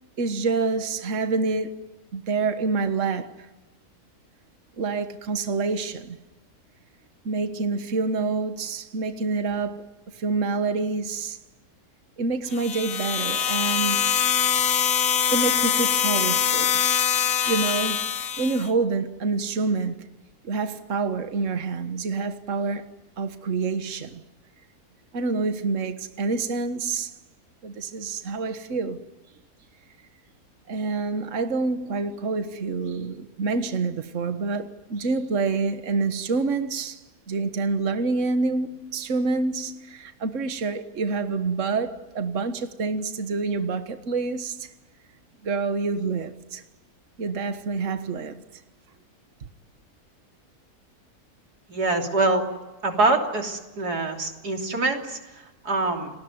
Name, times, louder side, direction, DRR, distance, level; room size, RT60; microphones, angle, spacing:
voice 1, 0.2-1.8 2.1-3.5 4.8-6.2 7.2-9.8 10.1-11.4 12.2-14.1 15.3-16.7 17.5-18.0 18.4-20.1 20.4-22.8 23.2-24.2 25.1-27.1 27.6-29.0 30.7-44.7 45.4-46.6 47.2-48.4, right 4 dB, 55° right, 1.7 m, -27 dB
sound 1, 12.5-18.7, left 8 dB, 70° left, 1.5 m, -23 dB
voice 2, 51.7-52.5 52.8-56.1, right 2 dB, 90° right, 3.8 m, -25 dB
29.5 x 20.0 x 9.5 m
omnidirectional pair, 1.6 m